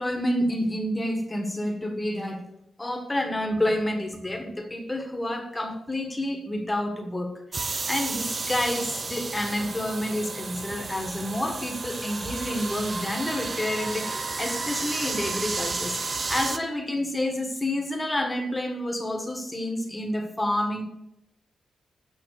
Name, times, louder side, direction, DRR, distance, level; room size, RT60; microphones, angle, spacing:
voice 1, 0.0-2.4 2.8-7.3 7.6-20.8, left 1 dB, 10° left, 4 dB, 1.4 m, -29 dB
sound 1, 7.5-16.6, right 3 dB, 30° right, 0.6 m, -32 dB
9.0 x 5.9 x 6.6 m, 0.85 s
wide cardioid pair, 170°, 0 cm